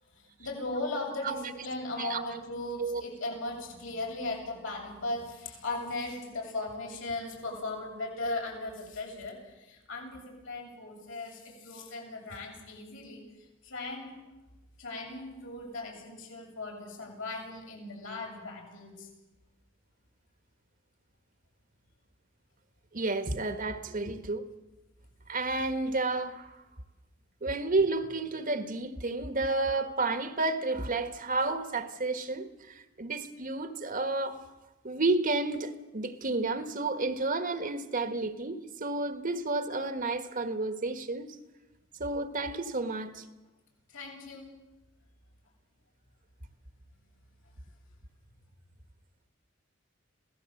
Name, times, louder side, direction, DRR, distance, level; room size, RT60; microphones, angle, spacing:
voice 1, 0.1-13.2 13.6-14.2 14.8-19.1 43.9-44.5, left 2 dB, 80° left, 7.6 m, -38 dB
voice 2, 2.0-2.3 2.8-3.0 22.9-24.4 25.3-26.6 27.4-34.4 34.8-41.4 42.0-43.2, right 3 dB, 45° right, 1.5 m, -31 dB
27.0 x 17.0 x 7.9 m
head